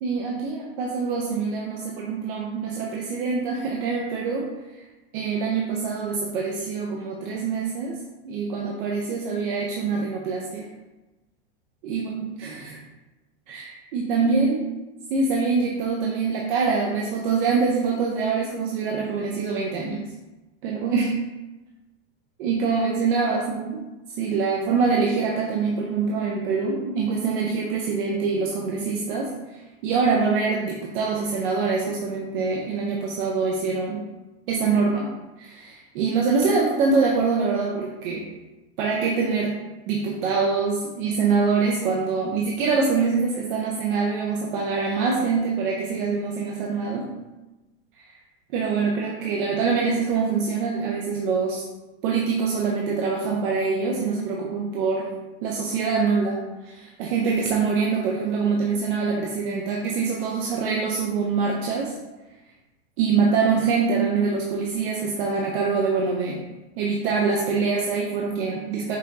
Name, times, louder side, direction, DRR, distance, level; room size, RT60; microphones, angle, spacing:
voice 1, 0.0-4.8 5.1-8.0 8.3-10.7 11.8-12.8 13.5-14.7 15.1-20.0 20.6-21.2 22.4-23.7 24.2-34.0 34.5-35.1 35.4-38.3 38.8-39.5 39.9-47.1 47.9-48.1 48.5-51.6 52.0-55.1 55.4-62.0 63.0-66.4 66.8-69.0, right 4 dB, 50° right, -2 dB, 0.6 m, -24 dB
5.4 x 2.9 x 2.6 m, 1.1 s
supercardioid pair, 155°, 33 cm